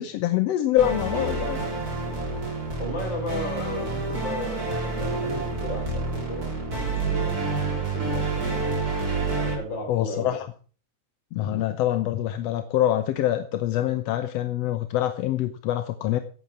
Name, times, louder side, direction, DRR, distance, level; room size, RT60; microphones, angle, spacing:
voice 1, 0.0-1.6 9.9-10.5 11.3-16.2, left 12 dB, 70° left, 10 dB, 1.7 m, -25 dB
sound 1, 0.8-9.6, right 3 dB, 30° right, 4.2 m, -28 dB
voice 2, 2.8-6.5 6.8-8.5 9.3-10.4, left 1 dB, 35° left, 3 dB, 4.8 m, -35 dB
15.5 x 8.6 x 5.9 m, 0.41 s
omnidirectional pair, 3.5 m